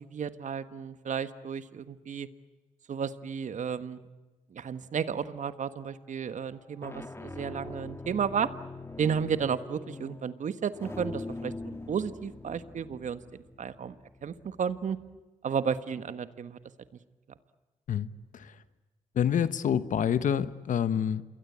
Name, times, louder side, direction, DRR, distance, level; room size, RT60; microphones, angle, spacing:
voice 1, 0.0-2.3 2.9-4.0 4.5-8.5 9.0-13.2 13.6-13.9 14.2-15.0 15.4-16.6, right 7 dB, 65° right, 12 dB, 1.4 m, -33 dB
sound 1, 5.3-5.8 6.6-15.2, left 2 dB, 20° left, 1.6 m, -43 dB
voice 2, 19.1-21.2, left 8 dB, 70° left, 14 dB, 1.1 m, -27 dB
28.0 x 21.5 x 8.6 m, 1.2 s
supercardioid pair, 50°, 14 cm